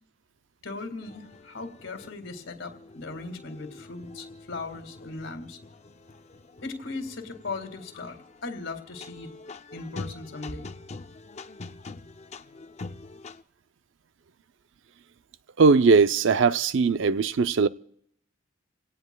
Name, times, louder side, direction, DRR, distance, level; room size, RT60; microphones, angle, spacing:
voice 1, 0.6-5.6 6.6-9.3 9.7-10.7, left 3 dB, 85° left, 2.1 m, -38 dB
sound 1, 1.0-13.4, left 3 dB, 35° left, 0.5 m, -45 dB
voice 2, 15.6-17.7, right 4 dB, 70° right, 0.5 m, -20 dB
29.0 x 17.5 x 2.3 m
head